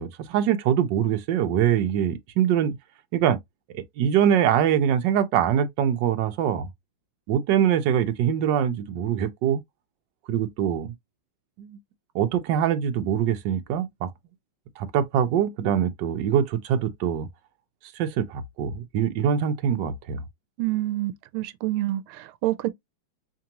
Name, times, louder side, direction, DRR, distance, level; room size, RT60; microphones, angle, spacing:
voice 1, 0.0-2.8 3.1-3.4 3.7-6.7 7.3-9.6 10.3-10.9 11.6-11.8 12.1-14.1 14.8-17.3 18.0-20.2, right 9 dB, 65° right, 1.3 m, -23 dB
voice 2, 20.6-22.7, right 16 dB, 90° right, 1.5 m, -27 dB
5.2 x 2.5 x 2.9 m
omnidirectional pair, 2.3 m